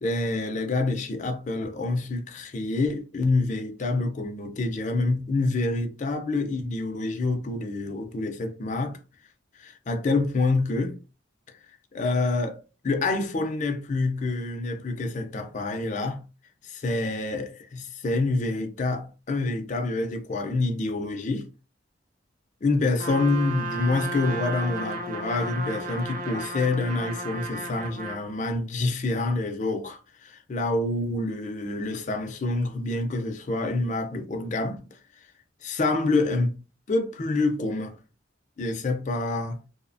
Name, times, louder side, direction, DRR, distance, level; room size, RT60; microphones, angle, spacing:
voice 1, 0.0-9.0 9.5-11.0 11.9-16.2 16.6-21.5 22.6-34.8 35.6-36.5 36.9-38.0 38.6-39.6, left 2 dB, 40° left, 0.4 m, -27 dB
Trumpet, 23.0-28.3, right 2 dB, 45° right, 0.4 m, -34 dB
2.7 x 2.0 x 2.5 m
head